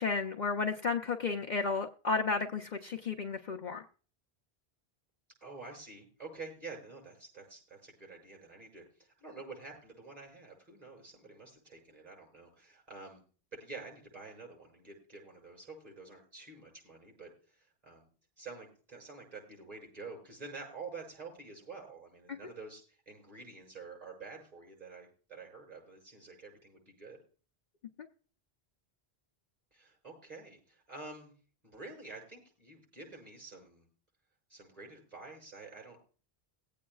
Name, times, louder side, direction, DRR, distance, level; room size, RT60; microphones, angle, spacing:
voice 1, 0.0-3.8 22.3-22.4, left 4 dB, 50° left, 3 dB, 0.7 m, -33 dB
voice 2, 5.4-13.2 13.5-18.1 18.4-27.2 29.7-31.3 31.6-33.9 34.5-36.0, right 3 dB, 40° right, -1 dB, 7.0 m, -48 dB
22.0 x 8.5 x 2.3 m, 0.40 s
omnidirectional pair, 1.1 m